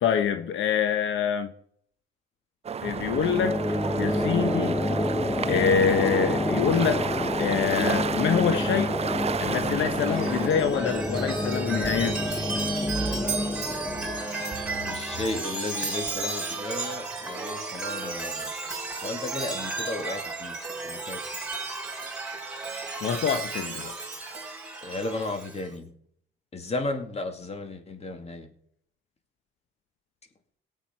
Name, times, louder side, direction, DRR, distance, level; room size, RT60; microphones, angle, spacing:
voice 1, 0.0-1.5 2.8-3.6 4.0-4.8 5.5-7.1 7.4-8.9 9.4-12.2 23.0-23.9, left 7 dB, 75° left, 8 dB, 1.0 m, -25 dB
sound 1, 2.6-10.5, right 7 dB, 30° right, 0.5 m, -32 dB
sound 2, 2.8-16.2, left 1 dB, 10° left, 1.1 m, -29 dB
Chime, 9.8-25.7, right 3 dB, 5° right, 3.7 m, -34 dB
voice 2, 14.8-18.5 18.9-20.6 20.9-21.2 24.8-25.9 26.5-28.5, left 2 dB, 30° left, 5 dB, 2.4 m, -34 dB
18.5 x 8.1 x 4.6 m, 0.66 s
cardioid pair, 90°, 20 cm